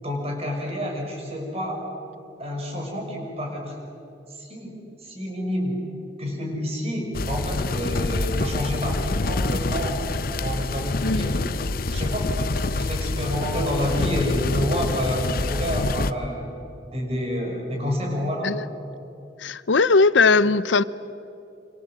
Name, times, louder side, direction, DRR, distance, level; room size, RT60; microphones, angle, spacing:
voice 1, 0.0-1.8 2.4-3.7 4.3-5.8 6.2-10.0 10.3-11.4 11.9-16.5 16.8-18.6, equal, 35° right, 0 dB, 6.2 m, -29 dB
sound 1, 7.1-16.1, left 2 dB, 50° left, 0.8 m, -26 dB
voice 2, 11.0-11.3 18.4-18.6 19.4-20.8, left 4 dB, 85° left, 17 dB, 0.7 m, -19 dB
27.0 x 26.5 x 7.7 m, 2.9 s
head